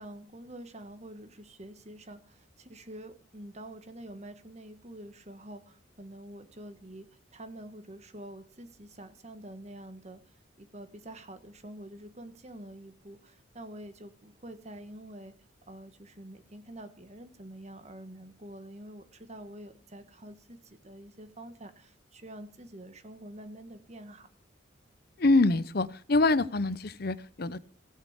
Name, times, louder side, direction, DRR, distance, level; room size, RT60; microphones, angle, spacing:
voice 1, 0.0-15.3 15.7-24.3, right 1 dB, 35° right, 9 dB, 1.5 m, -47 dB
voice 2, 25.2-27.6, left 2 dB, 50° left, 17 dB, 0.8 m, -25 dB
17.0 x 6.4 x 8.2 m, 0.43 s
head